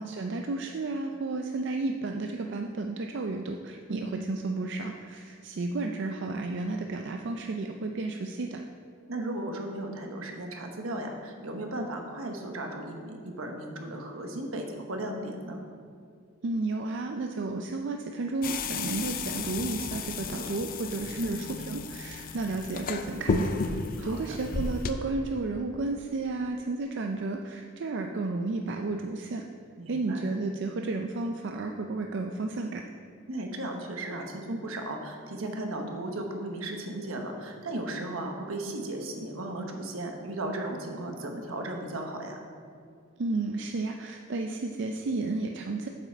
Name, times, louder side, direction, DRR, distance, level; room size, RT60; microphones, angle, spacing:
voice 1, 0.0-8.6 16.4-29.5 29.9-32.9 43.2-45.9, right 3 dB, 55° right, 3 dB, 0.4 m, -32 dB
voice 2, 9.1-15.6 21.2-21.4 24.0-24.4 29.8-30.2 33.3-42.4, right 1 dB, 80° right, 3 dB, 1.1 m, -35 dB
sound 1, 18.4-24.9, left 4 dB, 45° left, 0.5 m, -33 dB
7.9 x 7.3 x 4.4 m, 2.3 s
head